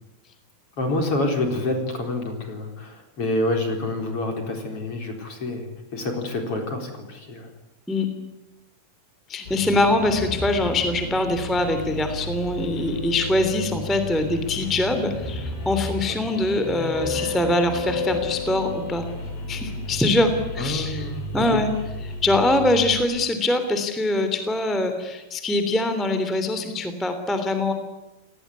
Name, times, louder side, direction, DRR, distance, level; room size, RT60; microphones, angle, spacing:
voice 1, 0.8-7.5 16.1-16.2 20.6-21.6, left 2 dB, 35° left, 3 dB, 4.8 m, -27 dB
voice 2, 9.3-19.1 19.5-21.1 21.3-21.7 22.2-27.7, left 2 dB, ahead, 7 dB, 2.3 m, -23 dB
sound 1, 9.5-23.0, left 2 dB, 90° left, 7.5 m, -32 dB
29.5 x 19.0 x 9.7 m, 1.0 s
omnidirectional pair, 4.6 m